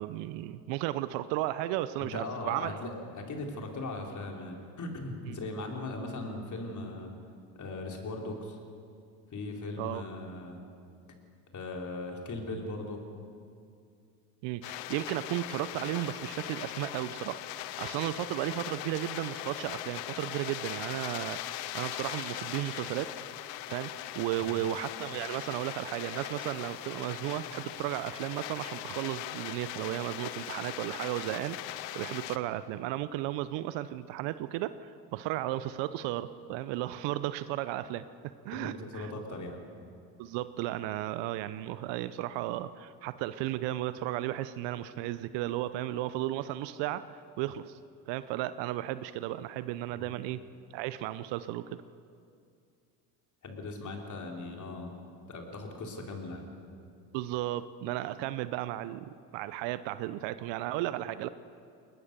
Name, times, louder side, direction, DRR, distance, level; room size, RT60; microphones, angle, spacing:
voice 1, 0.0-2.8 5.3-5.4 9.8-10.0 14.4-23.1 23.7-31.6 31.9-38.0 38.4-39.1 40.2-47.8 48.1-50.4 50.7-51.8 57.1-61.3, right 14 dB, 60° right, 14 dB, 0.9 m, -34 dB
voice 2, 2.0-7.1 7.6-8.6 9.3-10.6 11.5-13.0 24.4-24.6 38.5-39.6 49.9-50.2 53.4-54.9 55.3-56.5, left 2 dB, 35° left, 1 dB, 4.1 m, -39 dB
sound 1, 14.6-32.4, left 14 dB, 75° left, 1.0 m, -40 dB
21.0 x 20.0 x 6.9 m, 2.4 s
hypercardioid pair, 75°, 49 cm